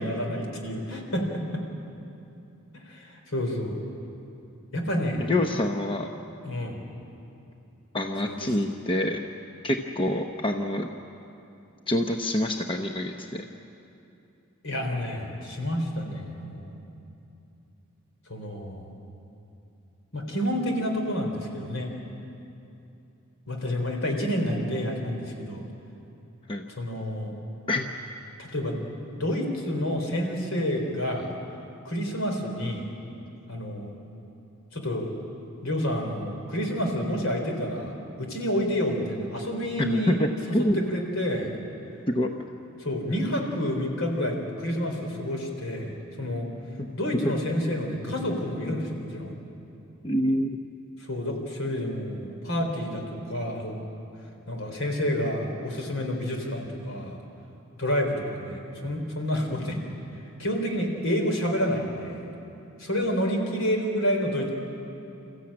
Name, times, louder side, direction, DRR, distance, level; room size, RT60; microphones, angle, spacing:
voice 1, 0.0-1.6 2.7-3.8 4.7-5.3 6.4-6.8 8.3-8.4 14.6-16.8 18.3-18.9 20.1-21.9 23.5-25.7 26.8-27.3 28.4-28.8 29.1-31.3 31.8-32.9 33.5-33.9 34.7-35.1 35.6-40.2 40.6-41.5 42.8-46.5 46.9-49.3 51.0-53.8 54.5-57.2 57.8-59.8 60.4-62.3 62.8-64.5, equal, 65° left, 3 dB, 3.8 m, -29 dB
voice 2, 5.2-6.1 7.9-9.2 9.6-10.9 11.9-13.4 26.5-26.6 27.7-27.9 39.8-40.8 42.1-42.3 46.8-46.9 50.0-50.6, left 1 dB, 25° left, 4 dB, 0.8 m, -26 dB
27.5 x 15.0 x 8.7 m, 2.8 s
head